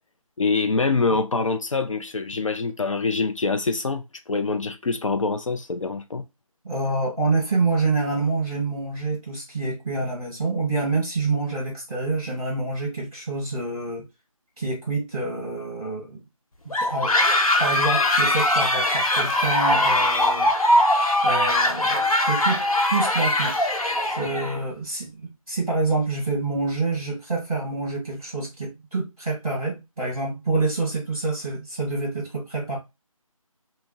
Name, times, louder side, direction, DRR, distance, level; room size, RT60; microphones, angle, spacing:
voice 1, 0.4-6.2, left 4 dB, 60° left, 0.4 m, -25 dB
voice 2, 6.6-14.1 14.6-16.2 16.6-17.2 17.6-20.5 21.2-22.6 22.9-23.6 24.1-32.8, right 3 dB, 5° left, 0.7 m, -27 dB
sound 1, 16.7-24.6, left 1 dB, 80° left, 0.9 m, -21 dB
2.3 x 2.0 x 3.8 m
figure-of-eight pair, 180°, 18 cm